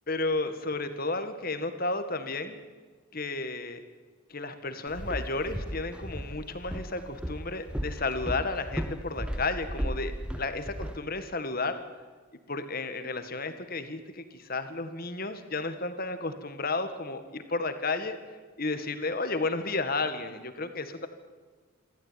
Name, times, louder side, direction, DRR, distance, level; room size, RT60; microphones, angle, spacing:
voice 1, 0.1-2.6 3.1-3.8 4.3-11.8 12.5-18.2 18.6-21.1, left 3 dB, 40° left, 9 dB, 1.9 m, -32 dB
Walk footsteps, 4.9-11.0, equal, 5° right, 0.8 m, -35 dB
28.0 x 13.0 x 9.3 m, 1.4 s
head